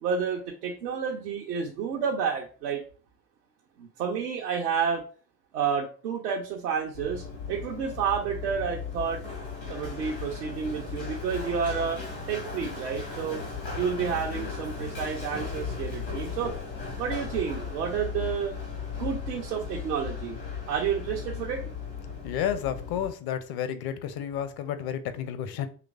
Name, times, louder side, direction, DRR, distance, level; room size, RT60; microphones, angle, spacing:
voice 1, 0.0-2.8 3.8-5.0 5.5-9.2 9.7-12.0 12.3-13.4 13.7-16.5 17.0-18.5 18.9-20.4 20.7-21.6, right 7 dB, 75° right, 0.7 m, -30 dB
Run, 6.9-23.1, left 5 dB, 85° left, 1.8 m, -36 dB
voice 2, 22.2-25.7, left 9 dB, 50° left, 0.7 m, -31 dB
5.8 x 3.1 x 2.4 m
figure-of-eight pair, 45°, 48 cm